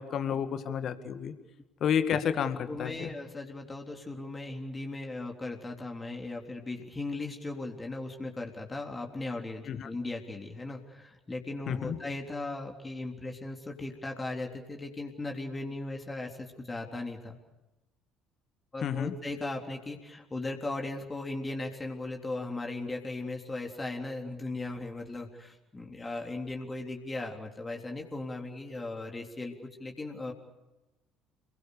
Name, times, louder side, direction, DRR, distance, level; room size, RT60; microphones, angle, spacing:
voice 1, 0.0-1.3 1.8-3.1 9.7-9.9 11.7-12.0 18.8-19.1, left 8 dB, 50° left, 10 dB, 2.0 m, -30 dB
voice 2, 2.7-17.4 18.7-30.3, left 2 dB, 20° left, 2 dB, 3.6 m, -37 dB
28.5 x 22.0 x 6.9 m, 1.0 s
figure-of-eight pair, 55°, 0 cm